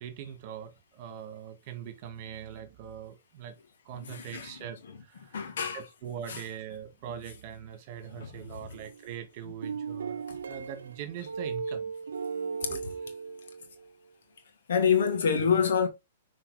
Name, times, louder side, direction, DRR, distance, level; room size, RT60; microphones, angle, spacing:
voice 1, 0.0-3.5 3.9-11.9 12.7-13.1, right 9 dB, 50° right, 2.0 m, -42 dB
voice 2, 3.9-4.6 4.9-5.9 6.3-6.4 8.2-8.6 9.4-9.5 10.3-10.4 12.4-12.8 14.7-15.9, left 6 dB, 70° left, 2.3 m, -28 dB
sound 1, 8.7-9.2 9.6-13.9, right 5 dB, 80° right, 0.5 m, -37 dB
5.8 x 4.9 x 5.1 m
hypercardioid pair, 125°, 0 cm